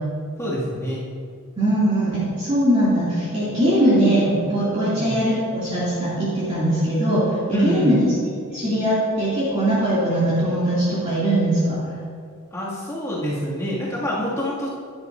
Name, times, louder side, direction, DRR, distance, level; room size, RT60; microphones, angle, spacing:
voice 1, 0.4-1.0 4.8-5.2 7.5-7.9 12.5-14.7, equal, 15° left, -8 dB, 2.3 m, -26 dB
voice 2, 1.6-8.0 8.5-11.8, right 1 dB, 30° right, -11 dB, 2.7 m, -21 dB
12.5 x 10.5 x 2.7 m, 2.1 s
head